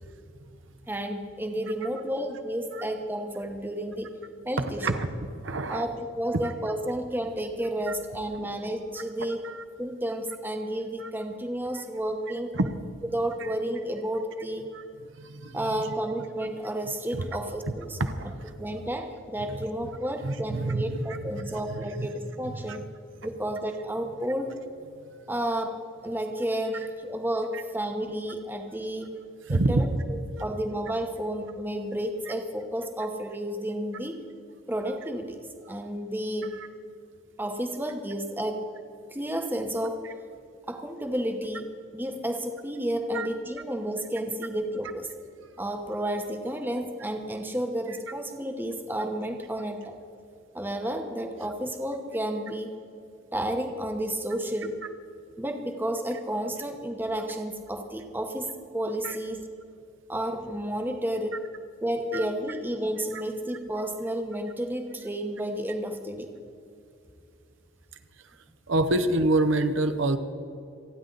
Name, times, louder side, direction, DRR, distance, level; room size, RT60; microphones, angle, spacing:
voice 1, 0.9-4.1 4.4-4.9 5.7-9.4 9.8-12.5 13.1-14.6 15.5-18.3 18.6-22.9 23.2-24.5 25.3-29.1 29.5-34.2 34.7-35.4 35.7-36.6 37.4-38.7 39.1-40.1 40.7-45.1 45.6-49.9 50.5-52.7 53.3-54.8 55.4-58.5 58.7-59.4 60.1-61.4 61.8-66.3, right 1 dB, 10° right, 5 dB, 1.0 m, -31 dB
voice 2, 4.6-5.1 5.4-5.9 6.4-6.5 7.9-8.0 9.4-9.6 11.0-11.1 11.8-11.9 12.5-12.7 13.4-13.5 14.7-14.8 15.2-15.8 17.1-17.3 18.0-18.5 20.2-21.2 21.5-22.1 22.5-22.8 27.5-27.6 29.5-30.0 36.5-36.7 40.0-40.1 43.1-43.3 47.9-48.0 59.0-59.2 62.1-62.2 63.1-63.2 68.7-70.2, right 2 dB, 60° right, 8 dB, 0.8 m, -27 dB
28.5 x 9.7 x 3.9 m, 2.5 s
head